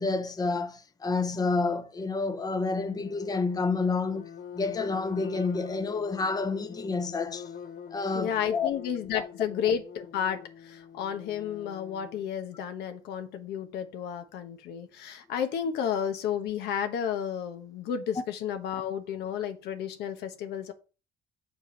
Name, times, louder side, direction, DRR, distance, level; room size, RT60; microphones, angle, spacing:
voice 1, 0.0-7.5 7.9-8.7 9.1-9.3 18.2-18.3, left 4 dB, 20° left, 0.8 m, -29 dB
sound 1, 2.7-12.3, left 7 dB, 50° left, 0.8 m, -45 dB
voice 2, 8.1-20.7, left 8 dB, 80° left, 1.1 m, -32 dB
7.0 x 4.6 x 5.6 m
cardioid pair, 110°, 17 cm